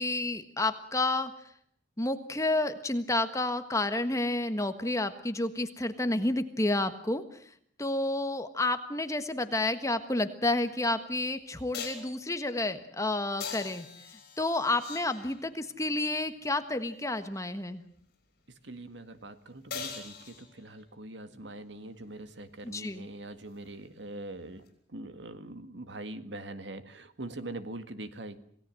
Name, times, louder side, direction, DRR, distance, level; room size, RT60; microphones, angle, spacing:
voice 1, 0.0-1.3 2.0-7.2 7.8-13.9 14.4-17.8 22.6-23.1, left 2 dB, 15° left, 9 dB, 1.4 m, -30 dB
sound 1, 10.7-10.8 11.7-12.2 13.4-15.6 19.7-20.8 24.7-24.8, left 5 dB, 55° left, 7.0 m, -41 dB
voice 2, 18.5-24.6 24.9-28.4, right 2 dB, 70° right, 10 dB, 1.8 m, -43 dB
27.0 x 17.5 x 7.7 m, 0.64 s
head